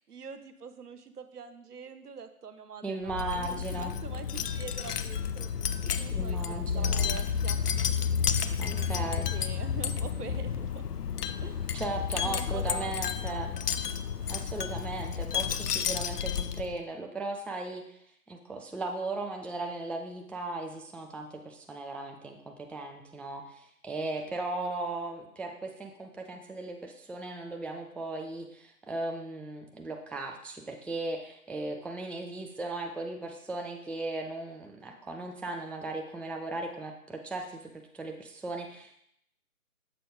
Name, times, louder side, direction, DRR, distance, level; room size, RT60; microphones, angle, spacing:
voice 1, 0.1-5.5 6.0-7.6 8.6-10.8 11.4-11.8 12.2-13.6 24.4-24.8, right 6 dB, 80° right, 8 dB, 0.8 m, -45 dB
voice 2, 2.8-4.0 6.1-7.2 8.6-9.3 11.7-13.5 14.3-18.0 18.3-39.0, right 2 dB, 5° left, 2 dB, 0.3 m, -37 dB
Wind chime, 3.1-16.8, left 7 dB, 80° left, 0.6 m, -31 dB
6.7 x 4.1 x 3.7 m, 0.73 s
hypercardioid pair, 180°, 46 cm